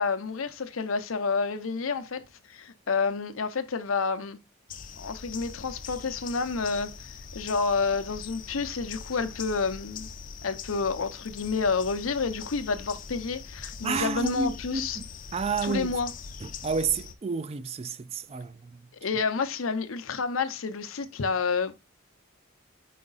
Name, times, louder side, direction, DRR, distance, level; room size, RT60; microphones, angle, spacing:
voice 1, 0.0-2.2 2.5-4.4 5.0-6.9 7.3-10.1 10.4-15.0 15.6-16.1 19.0-21.7, left 4 dB, 85° left, 0.7 m, -29 dB
sound 1, 4.7-17.1, left 6 dB, 40° left, 0.5 m, -42 dB
voice 2, 13.8-15.0 15.3-15.9 16.4-18.9, right 4 dB, 30° right, 0.3 m, -30 dB
5.0 x 4.7 x 4.0 m
head